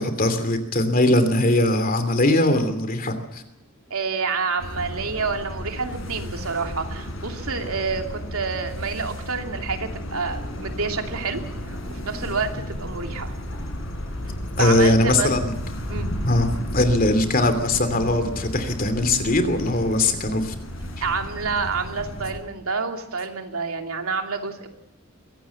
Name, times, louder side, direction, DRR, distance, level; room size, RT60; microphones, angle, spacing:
voice 1, 0.0-3.4 14.6-15.5 16.2-16.5 16.7-20.5, left 1 dB, 40° left, 8 dB, 3.0 m, -20 dB
voice 2, 3.9-11.4 11.7-13.3 14.6-15.3 15.9-16.1 21.0-24.7, right 4 dB, 75° right, 4 dB, 2.9 m, -28 dB
sound 1, 4.6-22.4, equal, 65° left, 7.1 m, -33 dB
23.0 x 17.0 x 7.2 m, 0.89 s
head